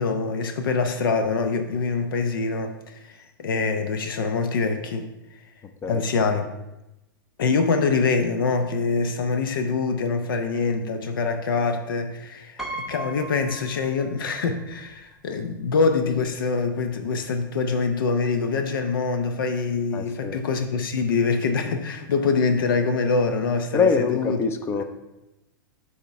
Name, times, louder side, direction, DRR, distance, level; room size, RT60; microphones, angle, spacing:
voice 1, 0.0-5.1 5.9-6.5 7.4-24.4, left 4 dB, 75° left, 7 dB, 0.6 m, -24 dB
Piano, 12.6-14.4 14.7-14.8 16.0-16.1 16.4-16.6, right 2 dB, 5° right, 0.8 m, -37 dB
voice 2, 19.9-20.4 23.7-24.8, left 5 dB, 20° left, 9 dB, 0.6 m, -24 dB
6.4 x 3.6 x 5.7 m, 0.95 s
hypercardioid pair, 115°, 11 cm